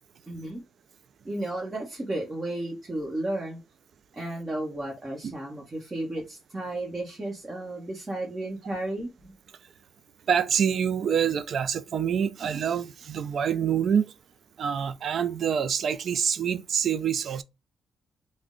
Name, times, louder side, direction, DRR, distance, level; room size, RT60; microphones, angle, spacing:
voice 1, 0.3-0.6 1.2-3.6 4.1-9.3, right 1 dB, 25° right, 1.1 m, -33 dB
voice 2, 10.3-14.1 14.6-17.4, right 8 dB, 60° right, 0.4 m, -26 dB
3.4 x 2.1 x 3.7 m
cardioid pair, 90°, 0 cm